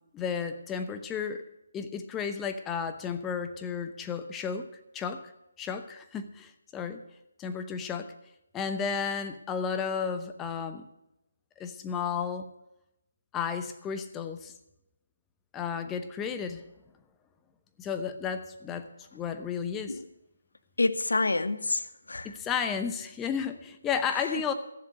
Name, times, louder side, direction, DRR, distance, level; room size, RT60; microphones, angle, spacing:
voice 1, 0.1-1.4 1.7-4.7 4.9-5.3 5.6-7.0 7.4-8.1 8.5-10.9 11.6-12.5 13.3-14.5 15.5-16.6 17.8-20.0 22.2-24.5, left 6 dB, 15° left, 0.8 m, -33 dB
voice 2, 20.8-22.4 24.1-24.4, left 2 dB, 80° left, 1.0 m, -28 dB
14.5 x 7.3 x 8.4 m
figure-of-eight pair, 155°, 0 cm